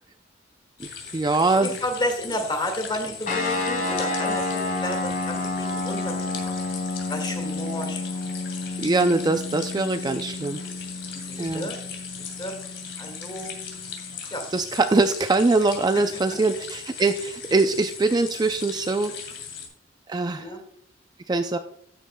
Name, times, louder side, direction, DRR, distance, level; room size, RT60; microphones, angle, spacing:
sound 1, 0.8-19.7, left 6 dB, 70° left, 2.4 m, -38 dB
voice 1, 0.8-1.8 8.8-10.6 11.4-11.7 14.5-19.1 20.1-20.5 21.3-21.6, right 3 dB, 20° right, 7 dB, 0.4 m, -23 dB
voice 2, 1.5-6.1 6.4-6.5 7.1-8.2 10.5-10.7 11.2-11.8 12.4-12.5 13.0-13.5 14.3-14.4 15.9-16.1 20.4-20.6, left 1 dB, 25° left, 4 dB, 2.0 m, -32 dB
sound 2, 3.3-14.2, left 2 dB, 45° left, 2.5 m, -30 dB
12.5 x 9.1 x 2.2 m, 0.65 s
head